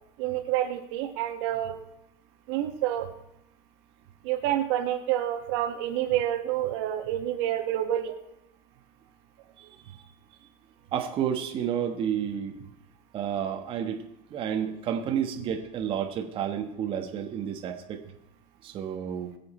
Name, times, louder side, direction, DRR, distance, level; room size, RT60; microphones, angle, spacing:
voice 1, 0.2-1.7 2.5-3.1 4.2-8.1, right 12 dB, 70° right, 5 dB, 1.7 m, -28 dB
voice 2, 9.6-10.0 10.9-12.6 13.1-14.0 14.3-18.0 18.6-19.3, right 9 dB, 35° right, 3 dB, 1.5 m, -31 dB
22.0 x 7.6 x 4.4 m, 0.81 s
supercardioid pair, 140°, 15 cm